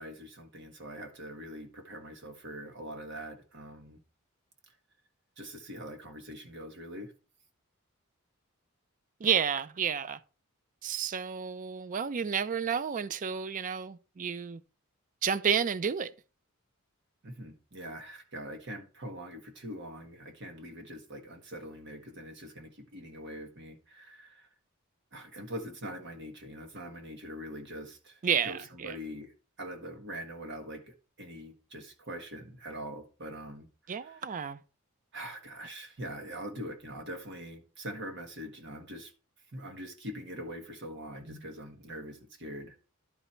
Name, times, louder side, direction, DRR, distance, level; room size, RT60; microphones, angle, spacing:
voice 1, 0.0-4.0 5.4-7.1 17.2-24.5 25.1-29.3 29.6-34.3 35.1-39.1 39.5-42.7, equal, 55° right, 1.5 m, -43 dB
voice 2, 9.2-10.2 10.8-14.6 15.2-16.1 28.2-28.9 33.9-34.6, right 7 dB, 35° right, 0.4 m, -31 dB
11.5 x 4.0 x 4.4 m
head